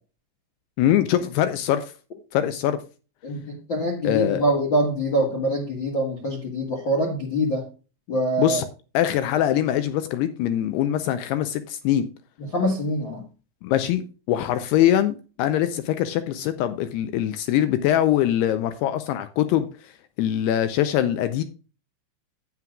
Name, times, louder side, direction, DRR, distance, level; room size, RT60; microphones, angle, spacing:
voice 1, 0.8-1.9 2.3-2.8 4.0-4.4 8.4-8.7 8.9-12.1 13.6-19.9 20.2-21.4, left 11 dB, 85° left, 10 dB, 2.3 m, -23 dB
voice 2, 3.2-7.6 8.1-8.6 12.4-13.2, equal, 55° left, -2 dB, 1.2 m, -24 dB
11.5 x 9.3 x 2.3 m, 0.34 s
omnidirectional pair, 5.4 m